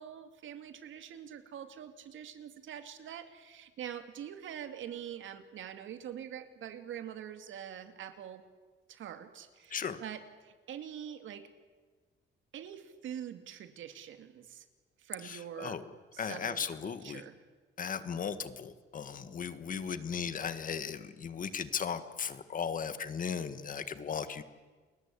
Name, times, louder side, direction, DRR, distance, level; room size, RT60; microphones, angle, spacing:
voice 1, 0.0-8.4 8.9-11.5 12.5-14.7 15.0-15.8 16.1-17.4, right 9 dB, 80° right, 9 dB, 2.5 m, -44 dB
voice 2, 15.2-15.8 16.2-17.2 17.8-24.4, left 7 dB, 45° left, 12 dB, 1.6 m, -37 dB
30.0 x 21.5 x 8.5 m, 1.4 s
cardioid pair, 140°, 20 cm